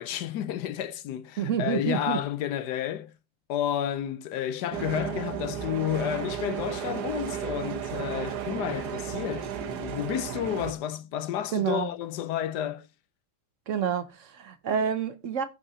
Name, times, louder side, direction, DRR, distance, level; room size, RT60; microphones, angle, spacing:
voice 1, 0.0-3.1 3.5-12.9, left 10 dB, 85° left, 1.3 m, -31 dB
voice 2, 1.4-2.2 11.5-11.9 13.7-15.5, right 7 dB, 60° right, 1.0 m, -28 dB
sound 1, 4.7-10.7, right 9 dB, 80° right, 1.5 m, -34 dB
15.5 x 5.5 x 2.8 m
omnidirectional pair, 1.7 m